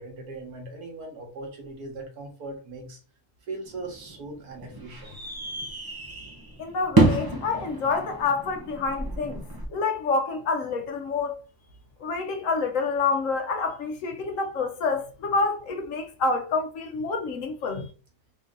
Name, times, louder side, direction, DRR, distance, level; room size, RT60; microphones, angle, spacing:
voice 1, 0.0-3.0 3.5-5.2, right 2 dB, 75° right, 1.7 m, -39 dB
sound 1, 3.6-9.6, right 2 dB, 35° right, 0.3 m, -28 dB
voice 2, 6.6-9.4 9.7-11.4 12.0-17.9, left 4 dB, 65° left, 1.0 m, -27 dB
3.6 x 2.8 x 3.7 m
omnidirectional pair, 1.6 m